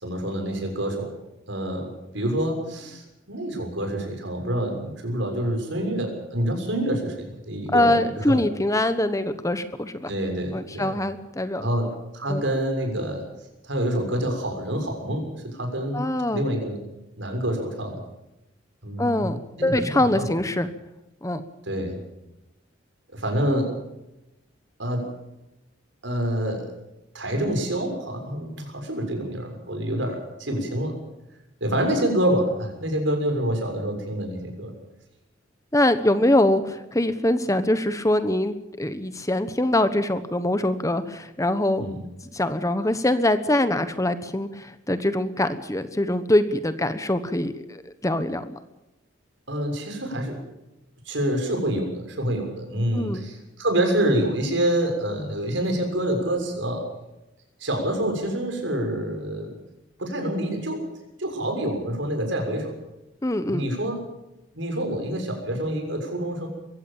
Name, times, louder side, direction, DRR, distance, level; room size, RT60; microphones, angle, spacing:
voice 1, 0.0-1.1 1.5-8.4 10.1-10.9 11.6-13.2 13.6-16.8 17.2-18.0 18.8-19.3 19.5-20.2 21.7-22.0 23.1-23.8 24.8-25.1 26.0-26.7 27.1-31.0 31.6-34.7 41.8-42.0 49.5-50.4 51.0-56.9 57.6-59.6 60.0-60.8 61.2-62.7 63.5-64.0 64.5-66.5, right 1 dB, 70° right, 4 dB, 6.7 m, -27 dB
voice 2, 7.7-10.1 10.5-11.7 12.3-12.4 15.9-16.4 19.0-20.7 21.2-21.4 35.7-41.9 42.3-48.6 52.9-53.2 63.2-63.6, left 1 dB, 15° left, 11 dB, 1.1 m, -23 dB
23.0 x 16.0 x 7.4 m, 0.93 s
head